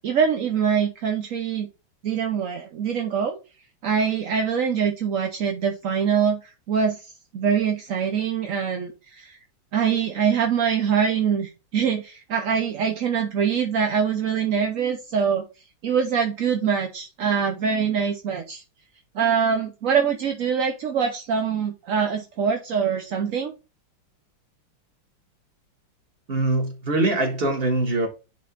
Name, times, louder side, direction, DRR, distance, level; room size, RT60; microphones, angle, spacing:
voice 1, 0.0-1.7 2.0-3.4 3.8-9.4 9.7-15.4 15.8-18.6 19.1-23.5, right 7 dB, 60° right, 0.9 m, -24 dB
voice 2, 26.3-28.1, right 2 dB, 30° right, 1.7 m, -23 dB
10.0 x 3.8 x 3.8 m
omnidirectional pair, 2.2 m